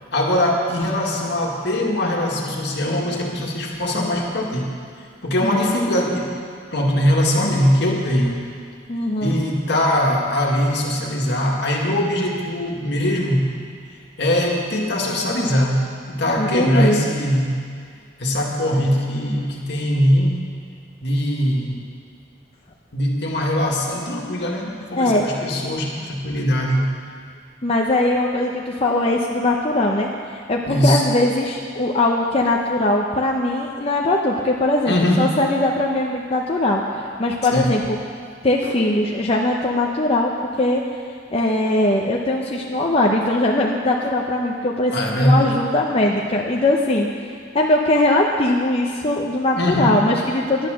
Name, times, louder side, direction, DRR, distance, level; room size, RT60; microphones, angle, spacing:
voice 1, 0.1-4.7 5.2-6.4 6.7-8.5 9.2-13.4 14.2-17.6 18.2-20.3 21.0-21.8 22.9-26.9 30.7-31.0 34.9-35.3 37.5-37.8 38.6-38.7 44.9-45.5 49.6-50.0, left 1 dB, 65° left, -1 dB, 2.0 m, -21 dB
voice 2, 8.9-9.3 16.4-17.1 25.0-25.2 27.6-38.0 38.4-40.3 40.6-40.8 41.3-50.7, left 1 dB, 35° left, -1 dB, 0.8 m, -20 dB
11.5 x 9.9 x 6.5 m, 2.2 s
head